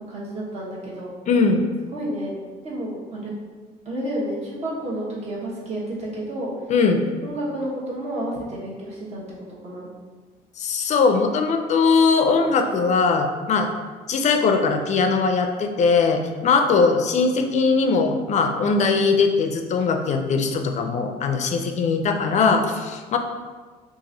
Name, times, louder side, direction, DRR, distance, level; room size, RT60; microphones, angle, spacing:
voice 1, 0.1-1.1 1.9-2.3 2.6-3.3 3.8-6.5 7.2-9.2 9.6-9.9 16.7-16.8, right 1 dB, 40° right, -5 dB, 1.1 m, -30 dB
voice 2, 1.3-1.6 6.7-7.0 10.6-13.7 14.1-23.2, left 4 dB, 45° left, 5 dB, 0.4 m, -20 dB
2.9 x 2.5 x 3.9 m, 1.4 s
cardioid pair, 110°, 17 cm